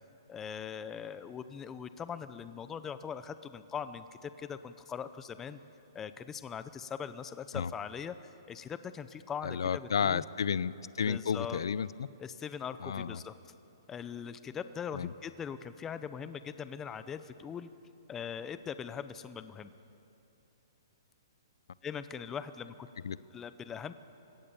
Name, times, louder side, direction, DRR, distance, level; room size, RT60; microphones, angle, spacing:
voice 1, 0.3-5.6 5.9-10.2 11.1-11.7 12.2-13.3 13.9-17.7 18.1-19.7 21.8-22.9 23.3-23.9, left 7 dB, 15° left, 12 dB, 0.7 m, -41 dB
voice 2, 9.4-12.1 12.8-13.2 14.9-15.1 23.0-23.2, left 7 dB, 80° left, 19 dB, 0.6 m, -32 dB
27.5 x 17.0 x 7.0 m, 2.8 s
hypercardioid pair, 155°, 2 cm